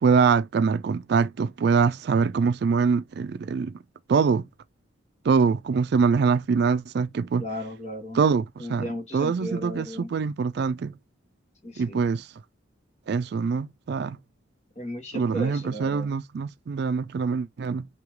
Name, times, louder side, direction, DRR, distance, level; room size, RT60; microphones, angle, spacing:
voice 1, 0.0-3.7 4.1-4.4 5.2-7.4 8.1-8.9 9.1-10.9 11.8-12.3 13.1-14.2 15.1-17.9, right 5 dB, 55° right, 0.3 m, -24 dB
voice 2, 7.4-8.2 8.6-10.1 11.6-12.0 14.7-16.1, equal, 35° left, 1.4 m, -35 dB
5.1 x 2.9 x 3.1 m
head